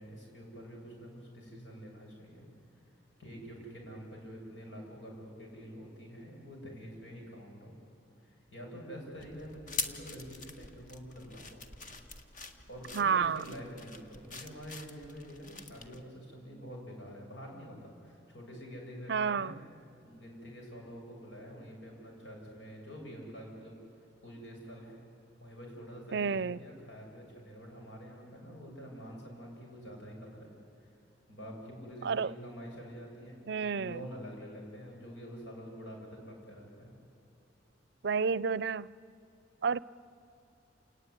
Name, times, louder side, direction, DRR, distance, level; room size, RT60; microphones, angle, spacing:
voice 1, 0.0-2.5 3.2-7.7 8.2-11.6 12.7-19.5 20.0-25.0 25.4-30.5 30.8-31.0 31.3-33.4 33.7-36.9, equal, 85° left, 7.8 m, -47 dB
sound 1, 9.2-16.0, left 4 dB, 45° left, 1.8 m, -44 dB
voice 2, 12.9-13.4 19.1-19.5 26.1-26.6 32.0-32.3 33.5-34.0 38.0-38.9 39.6-39.8, right 6 dB, 65° right, 0.5 m, -30 dB
29.0 x 19.0 x 9.8 m
head